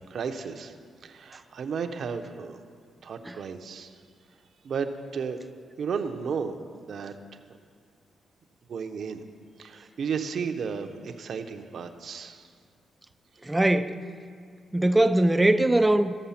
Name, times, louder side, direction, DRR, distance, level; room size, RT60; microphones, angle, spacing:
voice 1, 0.1-0.7 1.0-2.6 3.0-4.0 4.6-5.4 5.8-7.4 8.7-9.2 9.6-12.4, right 6 dB, 60° right, 0.7 m, -33 dB
voice 2, 13.5-14.0 14.7-16.2, right 1 dB, 15° right, 0.4 m, -21 dB
13.5 x 6.7 x 5.7 m
cardioid pair, 95°, 0 cm